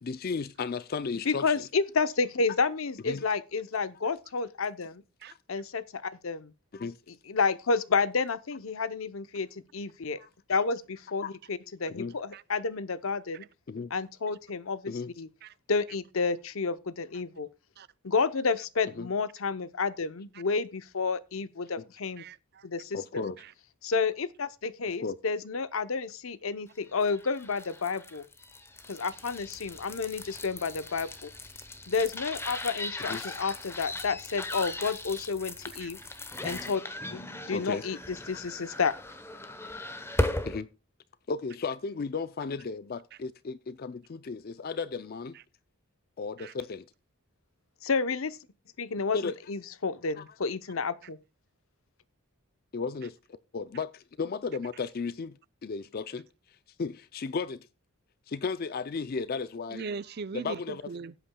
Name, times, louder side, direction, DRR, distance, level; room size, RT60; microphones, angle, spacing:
voice 1, 0.0-1.5 3.0-3.2 5.3-5.4 6.7-7.0 10.2-10.3 11.2-11.3 11.9-12.1 13.7-13.9 14.9-15.1 19.0-19.1 22.9-23.4 25.0-25.2 33.0-33.4 37.5-38.0 40.4-40.7 41.3-45.4 46.2-46.9 49.1-49.3 50.2-50.3 52.7-53.2 53.5-56.3 56.8-57.7 58.3-59.8 60.3-60.8, left 4 dB, 45° left, 0.4 m, -34 dB
voice 2, 1.2-5.0 5.5-6.5 7.3-10.2 10.5-13.4 13.9-15.3 15.7-17.5 18.0-22.2 22.6-23.0 23.8-28.3 28.9-31.3 31.9-36.0 36.4-36.8 37.1-39.0 47.8-48.4 48.8-51.2, left 4 dB, 65° left, 0.7 m, -30 dB
voice 3, 22.2-22.7 23.4-23.5 35.8-35.9 43.1-43.2 45.3-45.4 46.4-46.5 59.7-61.1, right 4 dB, 45° right, 0.5 m, -40 dB
sound 1, 26.9-40.6, left 1 dB, 10° left, 0.9 m, -38 dB
17.0 x 8.3 x 2.2 m
head